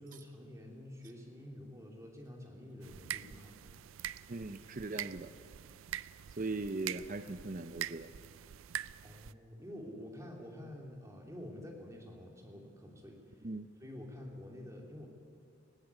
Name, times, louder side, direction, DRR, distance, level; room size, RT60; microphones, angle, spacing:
voice 1, 0.0-3.8 9.0-13.2 13.8-15.1, left 1 dB, 15° right, 0 dB, 2.9 m, -48 dB
sound 1, 2.8-9.3, right 11 dB, 85° right, 0.4 m, -44 dB
voice 2, 4.3-5.3 6.4-8.1 13.4-13.7, right 2 dB, 40° right, 8 dB, 0.6 m, -39 dB
20.0 x 16.0 x 8.3 m, 2.5 s
head